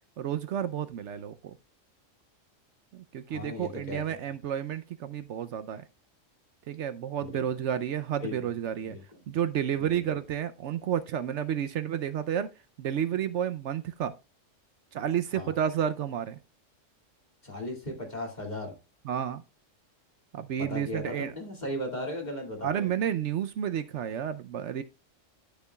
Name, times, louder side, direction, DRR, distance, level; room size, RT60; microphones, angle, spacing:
voice 1, 0.2-1.6 2.9-5.8 6.7-9.0 9.3-12.5 12.8-14.1 14.9-16.4 19.0-19.4 20.3-21.3 22.6-24.8, right 9 dB, 70° right, 0.9 m, -31 dB
voice 2, 3.3-4.0 7.2-7.4 8.2-8.3 8.9-9.0 9.8-10.2 15.3-15.6 17.4-18.8 20.6-22.9, left 1 dB, 35° left, 2.4 m, -36 dB
11.5 x 6.7 x 2.3 m
omnidirectional pair, 1.3 m